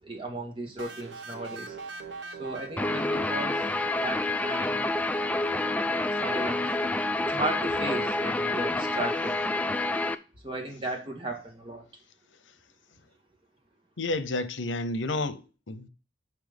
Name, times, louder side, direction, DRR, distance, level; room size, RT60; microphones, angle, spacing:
voice 1, 0.0-1.8 2.3-3.6 4.0-4.9 6.1-6.7 7.2-9.4 10.4-11.9, right 2 dB, 25° right, 1.8 m, -35 dB
sound 1, 0.8-4.6, right 4 dB, 75° right, 1.2 m, -42 dB
Guitar, 2.8-10.1, left 2 dB, 10° left, 0.3 m, -28 dB
voice 2, 14.0-15.9, left 2 dB, 90° left, 0.8 m, -31 dB
6.0 x 5.5 x 5.2 m
head